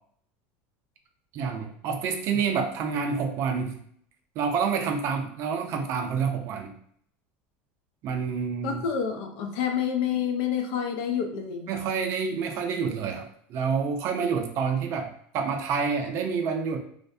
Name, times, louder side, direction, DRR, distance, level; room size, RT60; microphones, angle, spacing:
voice 1, 1.3-3.8 4.4-6.7 8.0-8.8 11.7-16.8, right 6 dB, 45° right, 4 dB, 0.4 m, -28 dB
voice 2, 8.6-11.7, left 8 dB, 65° left, 5 dB, 0.5 m, -28 dB
2.5 x 2.1 x 2.5 m, 0.64 s
supercardioid pair, 135°, 6 cm